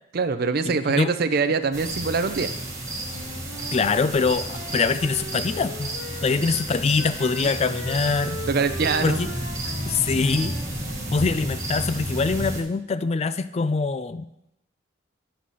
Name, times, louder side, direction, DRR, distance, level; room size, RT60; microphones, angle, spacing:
voice 1, 0.1-2.5 8.5-9.2, right 4 dB, 50° right, 10 dB, 0.5 m, -23 dB
voice 2, 0.6-1.1 3.7-5.9 6.2-8.4 9.0-9.3 9.9-10.5 11.1-14.3, left 4 dB, 30° left, 14 dB, 0.3 m, -24 dB
sound 1, 1.7-12.6, right 1 dB, 15° right, 1.4 m, -31 dB
Wind instrument woodwind instrument, 3.0-6.7 7.0-11.3, left 1 dB, 75° left, 1.8 m, -40 dB
11.5 x 4.1 x 6.2 m, 0.84 s
head